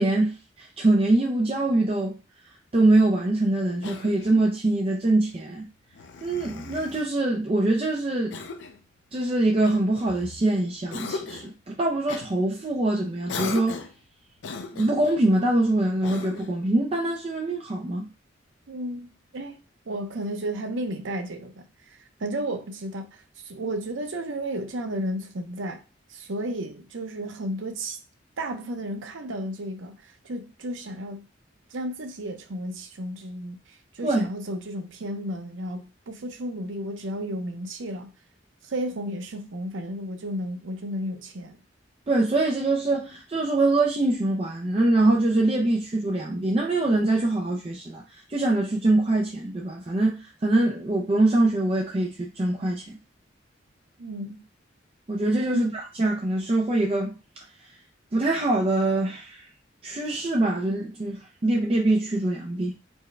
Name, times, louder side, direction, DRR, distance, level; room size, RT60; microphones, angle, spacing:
voice 1, 0.0-2.2 2.7-5.7 6.2-8.4 9.1-13.8 14.7-18.1 34.0-34.3 42.1-53.0 55.1-57.2 58.1-59.5 59.8-62.7, right 2 dB, 30° right, 0.4 m, -24 dB
Cough, 3.8-4.6 5.9-7.1 8.3-8.8 9.6-10.5 10.9-11.5 12.1-12.3 13.3-14.0 14.4-15.2 16.0-16.6, left 4 dB, 70° left, 0.5 m, -37 dB
voice 2, 18.7-19.1 19.3-19.6 19.9-25.8 26.1-28.0 28.4-31.2 31.7-38.1 38.6-41.6 54.0-54.4 55.5-55.7, right 1 dB, 85° right, 0.6 m, -33 dB
4.4 x 2.2 x 3.2 m
head